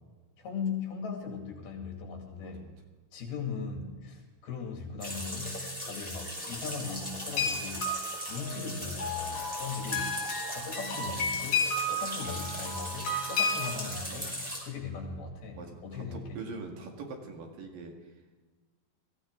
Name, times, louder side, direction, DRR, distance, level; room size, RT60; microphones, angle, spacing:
voice 1, 0.4-2.6 3.1-7.9 8.3-10.2 10.5-14.4 14.6-16.4, left 5 dB, 80° left, 1 dB, 4.3 m, -39 dB
voice 2, 2.4-2.7 15.5-18.1, right 4 dB, 65° right, 2 dB, 3.5 m, -43 dB
sound 1, 5.0-14.6, equal, 10° right, 4.8 m, -39 dB
sound 2, 7.4-13.8, left 3 dB, 55° left, 4.5 m, -33 dB
21.5 x 15.0 x 3.7 m, 1.3 s
omnidirectional pair, 4.3 m